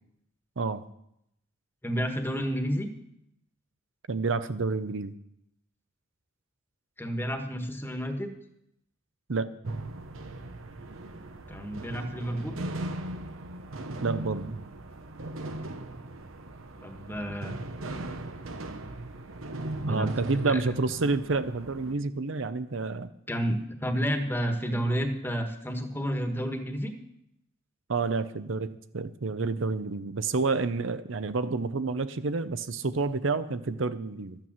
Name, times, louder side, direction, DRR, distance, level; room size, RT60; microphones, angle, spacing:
voice 1, 1.8-2.9 7.0-8.3 11.5-12.5 16.8-17.6 19.7-20.1 20.5-20.6 23.3-26.9, equal, 10° left, 5 dB, 1.3 m, -30 dB
voice 2, 4.1-5.1 9.3-9.5 14.0-14.6 19.9-23.1 27.9-34.4, right 3 dB, 65° right, 12 dB, 0.7 m, -29 dB
sound 1, 9.6-21.9, right 1 dB, 90° right, 1.1 m, -38 dB
12.5 x 8.9 x 7.4 m, 0.77 s
head